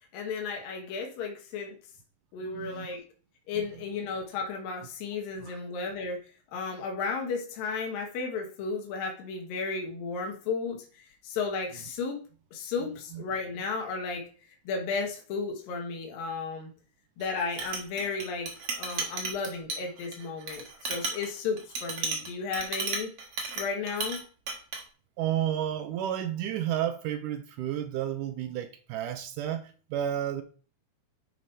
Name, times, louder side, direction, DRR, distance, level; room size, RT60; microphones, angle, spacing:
voice 1, 0.1-1.8 2.3-3.0 3.5-6.2 6.5-12.2 12.5-16.7 17.2-18.5 18.8-23.1 23.6-24.2, left 4 dB, 70° left, 1 dB, 3.1 m, -34 dB
voice 2, 2.4-2.9 5.4-5.6 13.1-13.2 25.2-30.4, right 11 dB, 75° right, 9 dB, 2.0 m, -31 dB
Chink clink, 17.2-24.2 24.5-24.8, right 4 dB, 50° right, 2.1 m, -34 dB
9.6 x 5.0 x 4.2 m, 0.39 s
omnidirectional pair, 4.3 m